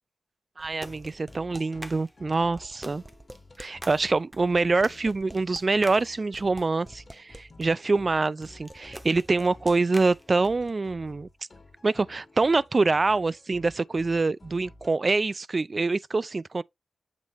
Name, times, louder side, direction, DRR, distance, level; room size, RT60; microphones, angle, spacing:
sound 1, 0.6-7.7 8.4-10.7, right 1 dB, 15° right, 0.8 m, -44 dB
voice 1, 0.6-3.0 3.6-11.3 11.8-16.6, right 3 dB, 45° right, 0.3 m, -25 dB
sound 2, 0.7-15.0, left 2 dB, 45° left, 1.3 m, -52 dB
7.3 x 3.0 x 4.5 m
cardioid pair, 45°, 0 cm